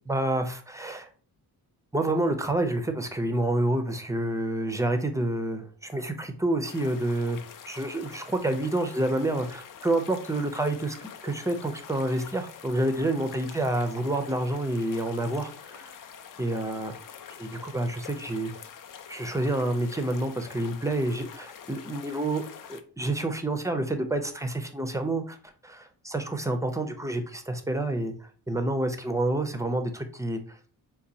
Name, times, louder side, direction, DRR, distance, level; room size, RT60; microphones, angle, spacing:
voice 1, 0.1-1.1 1.9-7.4 7.7-15.9 16.4-16.9 17.4-18.5 19.1-22.4 22.7-25.4 25.6-30.6, right 1 dB, 10° right, 6 dB, 0.4 m, -28 dB
sound 1, 6.6-22.8, left 8 dB, 55° left, 0.4 m, -46 dB
4.0 x 2.3 x 2.6 m, 0.42 s
cardioid pair, 95°, 39 cm